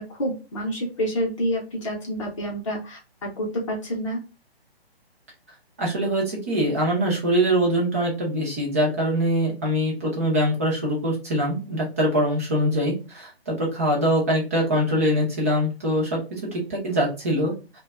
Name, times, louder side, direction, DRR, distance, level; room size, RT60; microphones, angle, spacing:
voice 1, 0.0-4.2, equal, 30° left, -1 dB, 0.7 m, -28 dB
voice 2, 5.8-17.8, equal, 15° right, -3 dB, 0.4 m, -23 dB
2.5 x 2.2 x 2.3 m, 0.31 s
hypercardioid pair, 155°, 31 cm